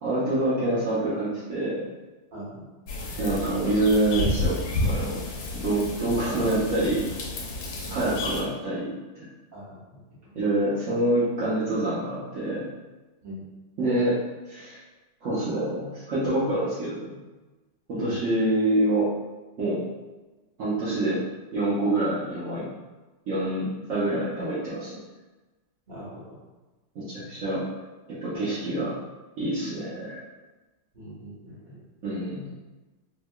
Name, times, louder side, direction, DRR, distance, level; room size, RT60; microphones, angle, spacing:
voice 1, 0.0-1.8 3.2-4.6 4.8-5.2 5.5-7.0 7.9-9.0 10.3-12.7 13.8-14.1 14.5-14.8 15.2-17.1 17.9-19.1 19.6-19.8 20.6-21.2 21.5-22.7 23.3-25.0 26.9-27.6 28.1-28.9 29.4-30.2 32.0-32.4, right 1 dB, 65° right, -12 dB, 0.8 m, -26 dB
voice 2, 2.3-2.7 7.8-8.2 9.5-10.3 13.2-13.4 17.9-18.2 25.9-26.4 28.4-28.5 30.9-31.8, right 1 dB, 30° right, -9 dB, 1.0 m, -41 dB
sound 1, 2.9-8.4, left 2 dB, 90° left, 1.6 m, -31 dB
4.6 x 2.2 x 2.3 m, 1.2 s
omnidirectional pair, 2.4 m